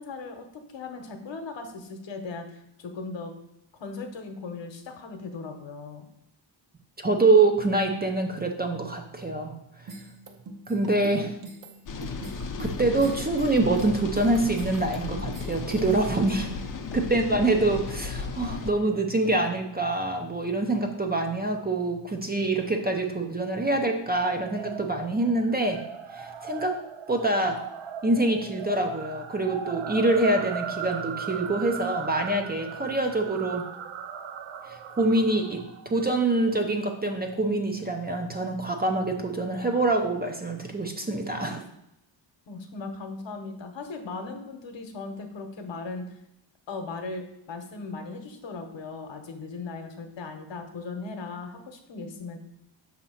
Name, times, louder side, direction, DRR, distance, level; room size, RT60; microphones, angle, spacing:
voice 1, 0.0-3.3 3.8-6.0 42.5-46.2 46.7-52.4, left 3 dB, 70° left, 5 dB, 1.0 m, -38 dB
voice 2, 7.0-9.6 10.7-11.4 12.6-16.5 16.9-25.8 26.1-26.8 27.1-27.6 28.0-33.7 34.7-41.6, right 2 dB, 20° right, 3 dB, 0.5 m, -25 dB
sound 1, 9.9-16.1, right 2 dB, 45° right, 0.8 m, -43 dB
sound 2, 11.8-18.7, left 4 dB, 45° left, 0.6 m, -35 dB
sound 3, 24.1-36.5, right 7 dB, 85° right, 0.7 m, -38 dB
6.0 x 2.8 x 5.6 m, 0.81 s
wide cardioid pair, 135°, 46 cm